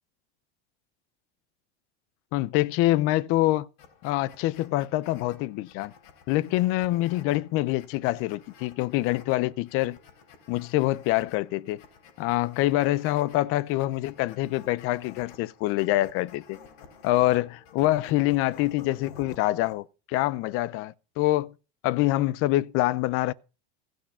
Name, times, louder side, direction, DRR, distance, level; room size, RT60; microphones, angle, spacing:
voice 1, 2.3-3.7 4.0-5.9 6.3-10.0 10.5-11.8 12.2-16.6 17.0-21.5 21.8-23.3, left 17 dB, 50° left, 0.6 m, -25 dB
sound 1, 3.8-19.8, left 6 dB, 70° left, 3.8 m, -52 dB
16.0 x 6.4 x 5.7 m
supercardioid pair, 145°, 29 cm